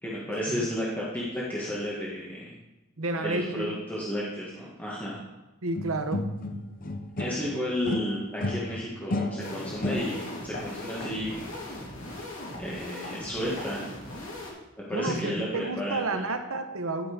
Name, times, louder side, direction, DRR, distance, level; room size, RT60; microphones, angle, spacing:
voice 1, 0.0-2.6 3.2-5.2 7.2-11.5 12.6-13.9 14.9-16.2, equal, 10° left, -6 dB, 1.6 m, -32 dB
voice 2, 3.0-3.8 5.6-6.3 14.9-17.1, right 2 dB, 75° right, 7 dB, 0.9 m, -31 dB
sound 1, 5.8-7.5 7.9-10.4, left 1 dB, 45° left, 0.8 m, -32 dB
sound 2, 9.4-14.5, left 1 dB, 70° left, 3.4 m, -39 dB
11.0 x 5.8 x 5.0 m, 1.0 s
head